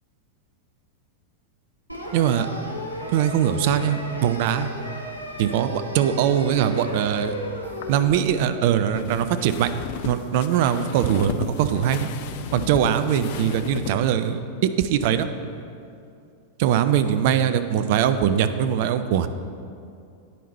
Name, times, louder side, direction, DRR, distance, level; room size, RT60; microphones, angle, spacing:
sound 1, 1.9-8.1, left 1 dB, 90° left, 0.8 m, -34 dB
voice 1, 2.1-2.5 3.1-4.7 5.4-7.3 7.9-9.7 10.0-12.1 12.5-15.3 16.6-19.3, right 9 dB, 50° right, 10 dB, 0.4 m, -21 dB
sound 2, 7.6-13.9, left 9 dB, 50° left, 0.4 m, -35 dB
9.2 x 5.4 x 4.1 m, 2.5 s
figure-of-eight pair, 90°, 0 cm